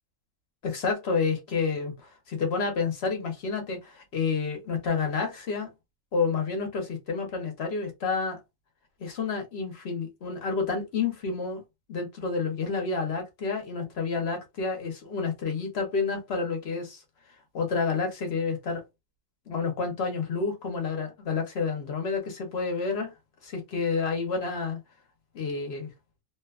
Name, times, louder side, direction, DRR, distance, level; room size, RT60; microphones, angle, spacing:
voice 1, 0.6-5.7 6.1-8.4 9.0-11.6 11.9-17.0 17.5-18.8 19.5-23.1 23.4-24.8 25.3-25.9, left 4 dB, 50° left, 0.9 m, -29 dB
2.7 x 2.2 x 2.3 m
omnidirectional pair, 1.6 m